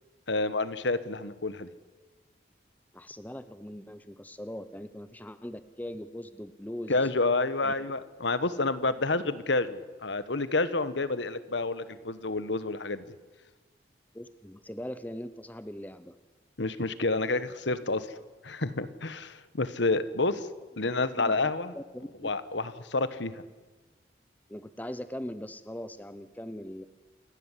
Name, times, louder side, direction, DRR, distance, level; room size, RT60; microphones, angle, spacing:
voice 1, 0.3-1.7 6.9-13.0 16.6-18.1 18.4-20.5 20.8-21.7 22.2-23.4, left 3 dB, 75° left, 14 dB, 1.3 m, -29 dB
voice 2, 2.9-7.0 7.6-7.7 14.1-16.1 21.1-22.3 24.5-26.9, equal, 10° left, 12 dB, 0.7 m, -41 dB
28.0 x 13.0 x 9.9 m, 1.3 s
head